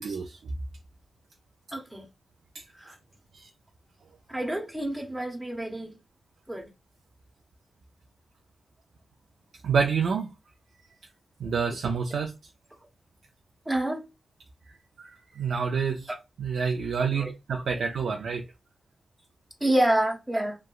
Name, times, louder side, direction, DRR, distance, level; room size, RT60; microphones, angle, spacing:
voice 1, 0.0-0.6 2.5-2.6 3.3-3.5 9.6-10.3 11.4-12.3 14.7-16.1 16.4-18.4, right 6 dB, 85° right, 0.3 m, -28 dB
voice 2, 1.7-2.1 2.8-2.9 4.3-6.0 6.5-6.7 13.7-14.1 17.1-17.3 19.6-20.6, right 1 dB, 10° right, 0.7 m, -27 dB
2.9 x 2.2 x 2.3 m
cardioid pair, 50°, 0 cm